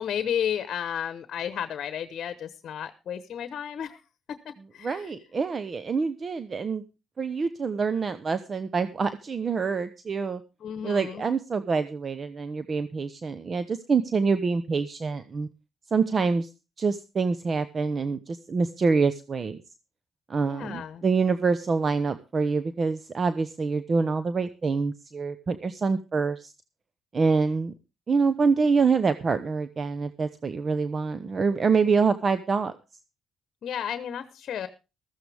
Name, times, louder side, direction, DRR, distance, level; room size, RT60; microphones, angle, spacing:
voice 1, 0.0-4.0 4.3-5.2 10.6-11.3 20.5-21.0 33.6-34.7, left 9 dB, 60° left, 12 dB, 1.1 m, -33 dB
voice 2, 4.8-6.8 7.2-10.4 10.8-15.5 15.9-16.5 16.8-19.6 20.3-26.5 27.1-27.7 28.1-32.7, right 4 dB, 40° right, 12 dB, 0.8 m, -26 dB
14.5 x 14.0 x 3.5 m, 0.30 s
cardioid pair, 90°, 0 cm